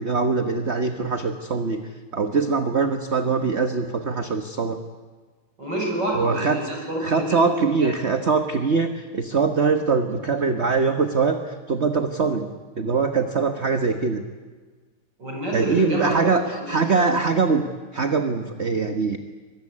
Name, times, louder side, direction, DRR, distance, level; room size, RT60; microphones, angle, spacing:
voice 1, 0.0-1.8 2.1-4.8 6.1-6.6 7.0-12.5 12.8-14.2 15.5-16.4 16.7-17.6 17.9-19.2, right 4 dB, 35° right, 6 dB, 1.4 m, -22 dB
voice 2, 5.6-7.5 7.8-7.9 15.2-17.1, right 1 dB, 55° right, 0 dB, 8.2 m, -27 dB
25.0 x 21.0 x 9.8 m, 1.4 s
omnidirectional pair, 2.2 m